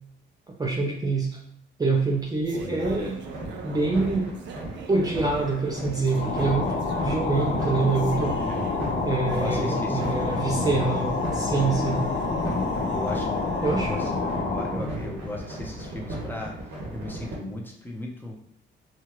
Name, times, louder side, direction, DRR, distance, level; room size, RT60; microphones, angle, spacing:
voice 1, 0.6-1.4 1.8-3.2 3.6-4.3 4.9-8.4 9.0-12.0 13.6-14.0 14.7-14.9, right 3 dB, 20° right, -1 dB, 0.5 m, -26 dB
sound 1, 1.9-15.4, right 5 dB, 65° right, 0.5 m, -42 dB
sound 2, 2.8-17.3, right 1 dB, 90° right, 1.4 m, -36 dB
sound 3, 6.0-14.9, left 4 dB, 40° left, 0.5 m, -28 dB
voice 2, 8.4-8.7 9.3-10.5 11.5-11.8 12.9-18.4, left 1 dB, 10° left, 0 dB, 0.8 m, -37 dB
4.4 x 2.3 x 3.0 m, 0.73 s
cardioid pair, 90°, 20 cm